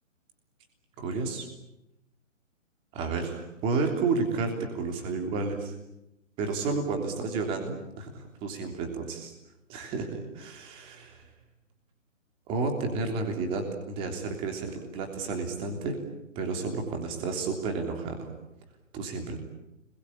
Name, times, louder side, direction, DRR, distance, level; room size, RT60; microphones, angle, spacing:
voice 1, 1.0-1.5 2.9-5.7 6.4-9.3 9.7-11.2 12.5-16.0 16.3-18.3 18.9-19.4, right 4 dB, 15° right, 4 dB, 3.4 m, -31 dB
27.5 x 22.0 x 8.7 m, 0.87 s
hypercardioid pair, 160°, 38 cm